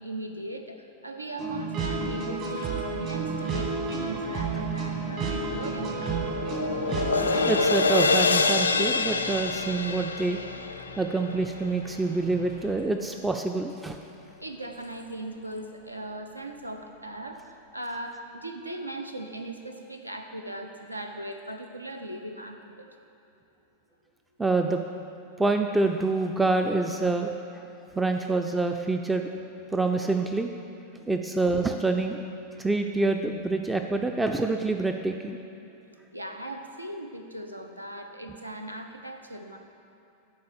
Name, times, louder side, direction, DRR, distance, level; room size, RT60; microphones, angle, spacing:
voice 1, 0.0-6.2 14.4-22.9 36.1-39.6, right 1 dB, 85° right, 4 dB, 0.6 m, -38 dB
sound 1, 1.4-7.6, right 4 dB, 40° right, 1.4 m, -31 dB
sound 2, 3.3-12.7, equal, 70° right, 1.7 m, -49 dB
sound 3, 5.5-11.9, left 4 dB, 75° left, 0.3 m, -26 dB
voice 2, 7.5-10.4 11.0-14.0 24.4-24.8 25.4-27.6 28.0-29.3 29.7-30.5 31.1-32.2 32.6-35.4, right 3 dB, 10° right, 5 dB, 0.3 m, -26 dB
9.4 x 4.0 x 6.5 m, 2.8 s
figure-of-eight pair, 90°, 0 cm